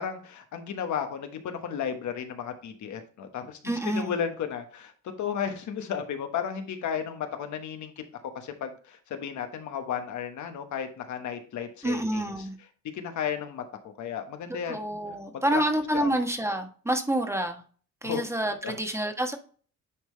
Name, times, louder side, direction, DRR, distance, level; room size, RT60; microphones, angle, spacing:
voice 1, 0.0-3.6 3.8-4.9 5.2-7.9 8.3-12.2 12.9-14.8 15.5-15.6 15.9-16.1 18.0-18.2 18.6-18.7, left 8 dB, 75° left, 1.3 m, -33 dB
voice 2, 3.6-4.1 11.8-12.6 14.5-17.6 18.0-19.4, right 1 dB, 10° right, 1.2 m, -28 dB
10.0 x 3.6 x 3.2 m
cardioid pair, 90°, 30 cm